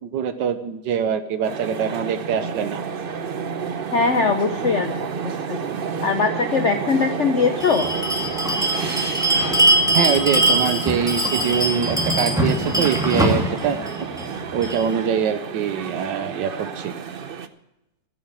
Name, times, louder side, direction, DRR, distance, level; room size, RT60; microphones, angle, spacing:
voice 1, 0.0-2.8 9.9-13.8 14.5-16.9, right 7 dB, 90° right, 9 dB, 1.6 m, -24 dB
sound 1, 1.4-17.5, right 6 dB, 50° right, 0.6 m, -30 dB
voice 2, 3.9-5.7 6.0-7.9, left 5 dB, 50° left, 6 dB, 1.0 m, -21 dB
Bell, 7.6-14.8, right 1 dB, ahead, 2.5 m, -22 dB
14.5 x 9.0 x 7.4 m, 0.91 s
omnidirectional pair, 1.9 m